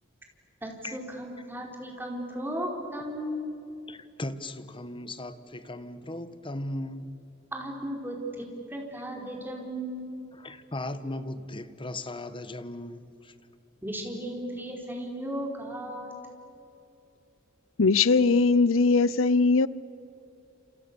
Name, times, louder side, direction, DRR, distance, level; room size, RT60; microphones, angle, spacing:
voice 1, 0.6-3.4 7.5-10.0 13.8-16.1, equal, 10° right, 4.6 m, -35 dB
voice 2, 3.9-7.2 10.3-13.3, left 1 dB, 25° left, 1.3 m, -37 dB
voice 3, 17.8-19.7, left 4 dB, 80° left, 0.7 m, -20 dB
29.5 x 28.0 x 7.0 m
head